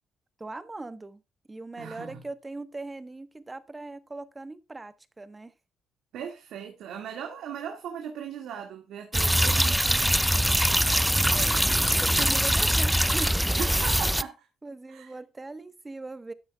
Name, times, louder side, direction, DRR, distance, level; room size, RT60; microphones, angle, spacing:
voice 1, 0.4-1.2 1.5-5.5 11.3-11.6 12.0-13.4 14.6-16.3, right 2 dB, 20° right, 1.2 m, -40 dB
voice 2, 1.8-2.2 6.1-10.9 13.6-14.5 14.9-15.2, right 8 dB, 80° right, 2.0 m, -39 dB
sound 1, 9.1-14.2, equal, 5° right, 0.4 m, -23 dB
13.0 x 9.2 x 2.3 m
cardioid pair, 90°, 0 cm